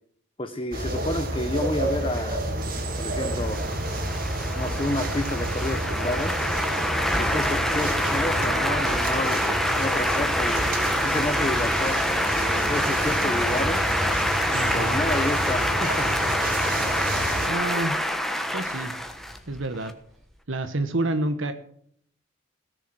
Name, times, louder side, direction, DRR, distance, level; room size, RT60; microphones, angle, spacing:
voice 1, 0.4-2.5 3.0-3.6 4.5-6.4 7.2-9.5 9.8-10.6 11.0-13.8 14.7-16.1, left 1 dB, 25° left, 8 dB, 0.8 m, -30 dB
sound 1, 0.7-17.5, right 1 dB, 45° right, 2.3 m, -30 dB
sound 2, 3.2-19.9, equal, ahead, 1.2 m, -26 dB
voice 2, 14.5-15.0 17.5-18.0 18.5-18.9 19.5-19.9 20.5-21.5, right 2 dB, 70° right, 8 dB, 1.2 m, -28 dB
17.5 x 6.9 x 7.6 m, 0.65 s
head